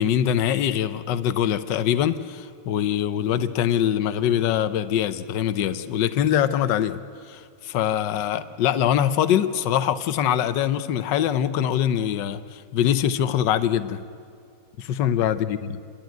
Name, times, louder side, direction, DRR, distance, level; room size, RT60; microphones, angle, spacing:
voice 1, 0.0-7.0 7.3-14.0 14.8-15.6, left 10 dB, 85° left, 12 dB, 1.4 m, -23 dB
29.0 x 11.5 x 9.1 m, 2.3 s
omnidirectional pair, 1.9 m